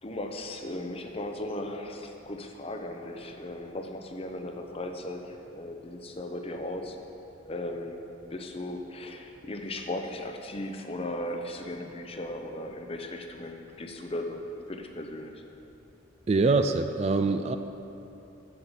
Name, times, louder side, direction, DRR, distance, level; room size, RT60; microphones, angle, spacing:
voice 1, 0.0-7.0 7.4-8.1 8.3-14.4 14.7-15.4, left 1 dB, 30° left, 4 dB, 0.7 m, -37 dB
voice 2, 16.3-17.6, right 3 dB, 35° right, 8 dB, 0.3 m, -24 dB
7.9 x 7.6 x 8.1 m, 3.0 s
head